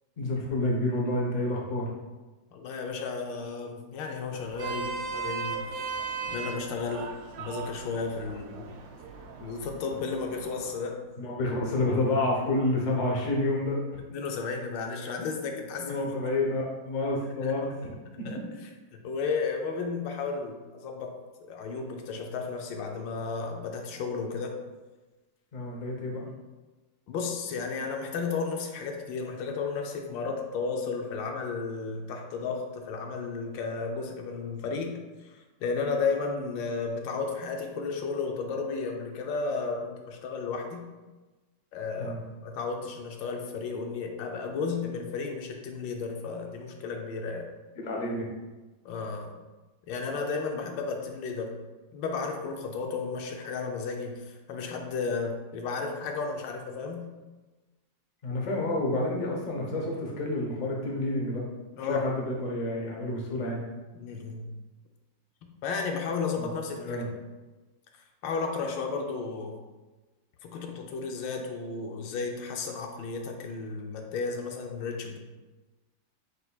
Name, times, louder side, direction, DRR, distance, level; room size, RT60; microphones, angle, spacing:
voice 1, 0.2-1.9 11.2-14.0 15.8-18.3 25.5-26.3 42.0-42.2 47.8-48.3 58.2-61.4 61.8-63.6 66.4-66.5 66.7-67.1, left 2 dB, 55° left, -2 dB, 0.4 m, -29 dB
voice 2, 2.5-5.9 6.3-7.1 7.4-8.7 9.4-11.0 14.1-16.1 16.4-16.5 17.4-17.5 18.2-18.4 18.9-21.1 21.4-24.6 27.1-40.8 41.7-42.2 42.4-47.5 48.8-49.3 49.9-51.6 51.9-57.0 61.8-62.0 63.9-64.5 65.6-67.0 68.2-69.6 70.4-75.2, left 4 dB, 80° left, 3 dB, 1.3 m, -33 dB
Vehicle horn car horn honking, 4.3-10.7, right 5 dB, 80° right, 0.7 m, -37 dB
5.2 x 4.3 x 2.3 m, 1.2 s
omnidirectional pair, 2.1 m